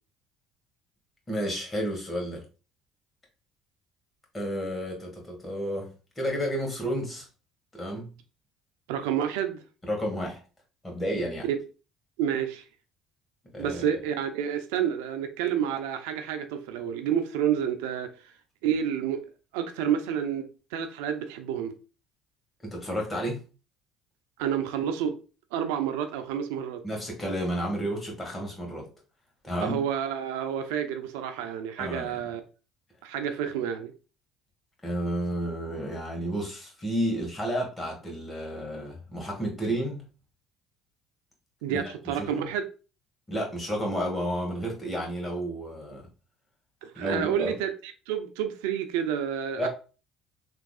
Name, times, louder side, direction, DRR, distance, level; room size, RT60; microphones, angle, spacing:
voice 1, 1.3-2.4 4.3-7.3 7.7-8.1 9.8-10.4 10.8-11.5 13.5-13.8 22.6-23.4 26.8-28.9 29.4-29.8 31.8-32.2 34.8-40.0 41.7-42.5 43.3-46.1 46.9-47.5 49.6-49.7, equal, 20° left, 1.9 m, -31 dB
voice 2, 8.9-9.6 11.4-11.6 12.2-12.6 13.6-18.1 18.6-19.2 19.5-21.7 24.4-25.2 25.5-26.8 29.6-32.4 33.0-33.9 41.6-42.6 46.8-47.7 48.1-49.7, right 9 dB, 80° right, 0.4 m, -29 dB
3.5 x 3.1 x 2.3 m
hypercardioid pair, 65°, 0 cm